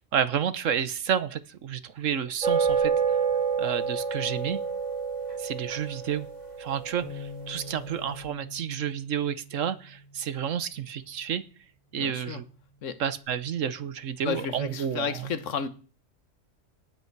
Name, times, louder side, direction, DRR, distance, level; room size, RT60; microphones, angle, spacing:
voice 1, 0.0-2.9 3.6-4.6 5.4-6.3 6.6-11.4 11.9-12.4 13.0-15.3, right 8 dB, 75° right, 1.3 m, -30 dB
sound 1, 2.4-7.9, right 5 dB, 30° right, 3.4 m, -28 dB
Bass guitar, 7.0-11.4 12.1-13.3, left 2 dB, 60° right, 8.0 m, -46 dB
voice 2, 11.9-12.4 12.8-13.0 14.2-15.7, left 6 dB, 70° left, 1.5 m, -32 dB
18.5 x 8.3 x 4.6 m
omnidirectional pair, 1.3 m